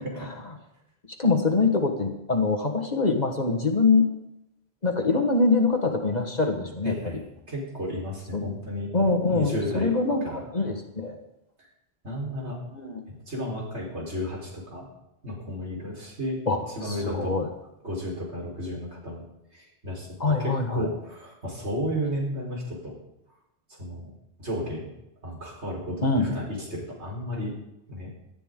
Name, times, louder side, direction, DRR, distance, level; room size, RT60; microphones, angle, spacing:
voice 1, 1.2-4.1 4.8-7.2 8.3-8.5 8.9-11.2 12.7-13.0 16.5-17.5 20.2-20.9 26.0-26.3, left 3 dB, 40° left, 3 dB, 1.7 m, -24 dB
voice 2, 6.8-7.2 7.5-8.9 9.3-9.9 10.2-10.4 11.6-11.7 12.0-12.6 13.1-14.9 15.2-16.4 16.7-17.4 17.8-19.2 19.5-20.1 20.4-23.0 23.7-24.1 24.4-24.9 25.2-27.6 27.9-28.1, equal, 75° right, -2 dB, 4.7 m, -33 dB
18.0 x 13.0 x 3.8 m, 0.86 s
omnidirectional pair, 1.1 m